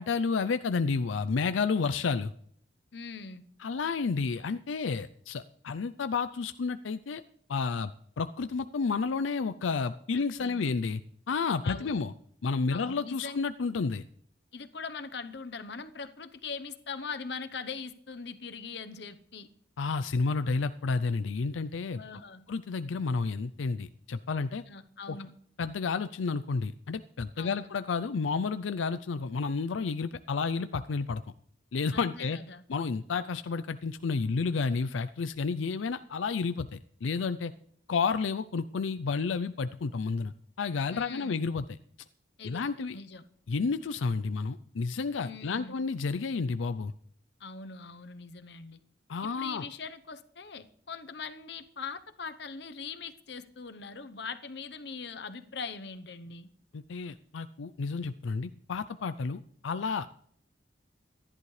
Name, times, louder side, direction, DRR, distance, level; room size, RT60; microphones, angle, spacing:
voice 1, 0.0-2.3 3.6-7.2 7.5-11.0 11.3-12.1 12.4-14.0 19.8-22.0 22.5-24.6 25.1-25.2 25.6-31.2 31.7-32.4 32.7-37.5 37.9-41.6 42.4-43.0 43.5-46.9 49.1-49.7 56.7-60.1, left 4 dB, 85° left, 0.5 m, -31 dB
voice 2, 2.9-3.4 10.1-10.7 11.6-12.0 12.7-13.4 14.5-19.5 22.0-22.5 24.7-25.4 27.4-27.7 31.9-32.6 40.9-41.4 42.4-42.6 42.9-43.2 45.2-45.8 47.4-48.8 49.2-56.5, left 5 dB, 60° left, 0.9 m, -41 dB
25.5 x 11.0 x 3.3 m
head